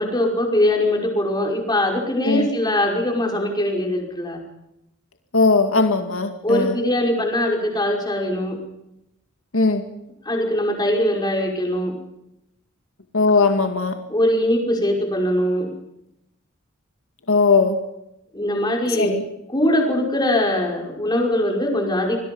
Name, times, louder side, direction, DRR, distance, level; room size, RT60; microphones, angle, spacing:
voice 1, 0.0-4.4 6.4-8.6 10.2-12.0 14.1-15.7 18.3-19.1 19.5-22.2, left 1 dB, 20° left, 1 dB, 5.6 m, -21 dB
voice 2, 5.3-6.7 9.5-9.8 13.1-14.0 17.3-17.8 19.0-19.2, left 4 dB, 80° left, 6 dB, 2.1 m, -18 dB
27.5 x 21.0 x 5.5 m, 0.85 s
head